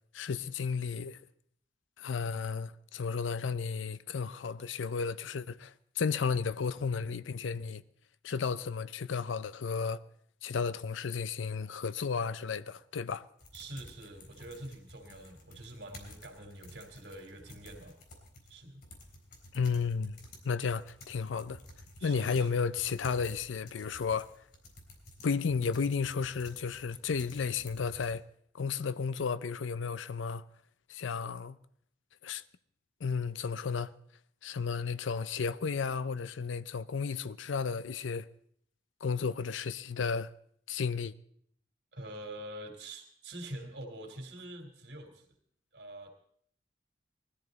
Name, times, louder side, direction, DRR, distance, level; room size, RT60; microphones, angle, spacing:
voice 1, 0.1-1.2 2.0-7.8 8.2-10.0 10.4-13.2 19.5-20.2 20.4-21.6 22.0-24.3 25.2-28.2 28.5-30.4 30.9-31.6 32.2-32.4 33.0-33.9 34.4-38.3 39.0-40.3 40.7-41.1, left 5 dB, 85° left, 0.5 m, -33 dB
sound 1, 13.4-28.1, left 1 dB, 55° left, 4.0 m, -53 dB
voice 2, 13.5-17.9 18.5-18.8 22.0-22.6 41.9-45.3 45.7-46.1, right 1 dB, 65° right, 3.0 m, -45 dB
20.0 x 14.0 x 4.0 m
head